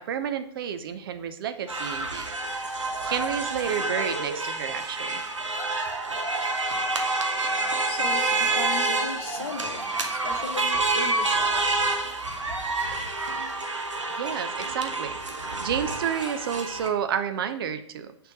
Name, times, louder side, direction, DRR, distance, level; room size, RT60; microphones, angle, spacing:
voice 1, 0.0-2.3 3.0-5.2 14.1-15.2 15.6-18.1, right 8 dB, 50° right, 9 dB, 0.7 m, -30 dB
sound 1, 1.7-16.9, right 3 dB, 80° right, 1.2 m, -28 dB
voice 2, 7.9-9.8 10.2-11.6, left 5 dB, 55° left, 5 dB, 1.3 m, -36 dB
6.3 x 4.5 x 6.5 m, 0.65 s
figure-of-eight pair, 110°, 16 cm